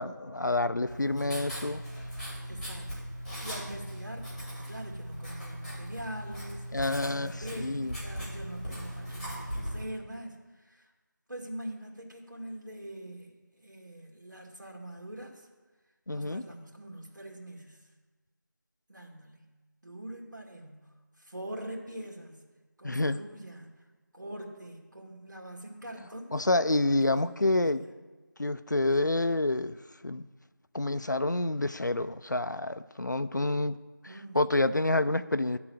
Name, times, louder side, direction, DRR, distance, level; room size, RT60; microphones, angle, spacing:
voice 1, 0.0-1.8 6.7-7.9 16.1-16.4 22.8-23.2 26.3-27.8 28.4-29.8 30.0-30.2 30.7-33.8 34.3-35.6, left 2 dB, 65° left, 12 dB, 0.4 m, -28 dB
Writing, 0.9-9.8, equal, 25° left, 3.4 m, -39 dB
voice 2, 2.4-3.0 3.4-10.9 11.3-15.5 16.1-17.9 18.9-19.5 19.8-22.5 22.8-23.8 24.1-26.3 26.8-27.9 34.0-34.5, right 1 dB, 65° right, 0 dB, 2.0 m, -44 dB
11.5 x 3.8 x 7.3 m, 1.3 s
figure-of-eight pair, 175°, 11 cm